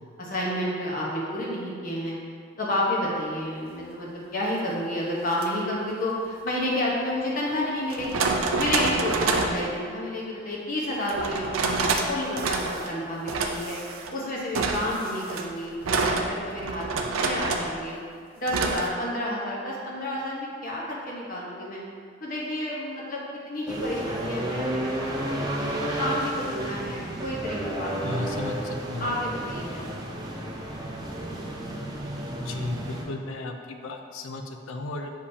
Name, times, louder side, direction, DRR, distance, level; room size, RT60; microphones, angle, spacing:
voice 1, 0.2-2.1 2.6-8.2 8.6-13.8 14.1-17.9 18.4-21.8 22.2-25.5 26.0-28.4 29.0-29.8, left 1 dB, 40° left, -5 dB, 1.0 m, -30 dB
sound 1, 5.3-5.5 7.1-7.2 7.9-9.6 11.1-12.1 12.4-12.9 13.3-14.1 14.6-17.8 18.5-18.9, right 3 dB, 85° right, 0.5 m, -27 dB
sound 2, 23.7-33.0, right 1 dB, 20° right, 0.6 m, -32 dB
voice 2, 28.0-29.2 32.4-35.1, left 2 dB, 75° left, 5 dB, 0.5 m, -34 dB
6.9 x 5.1 x 2.7 m, 2.1 s
head